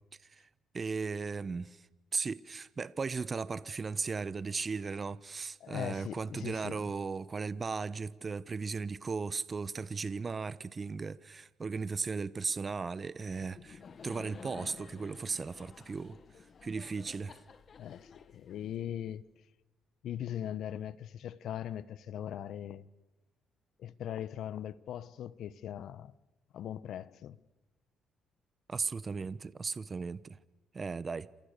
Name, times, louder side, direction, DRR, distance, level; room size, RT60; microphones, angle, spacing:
voice 1, 0.7-1.8 2.1-16.2 16.6-17.4 28.7-30.4 30.7-31.3, right 4 dB, 40° right, 1.1 m, -36 dB
voice 2, 5.6-6.9 17.8-19.2 20.0-22.9 23.8-26.1 26.5-27.4, left 10 dB, 70° left, 1.0 m, -40 dB
Laughter, 13.3-19.1, left 6 dB, 50° left, 2.0 m, -52 dB
29.5 x 27.5 x 6.8 m
supercardioid pair, 60°, 0 cm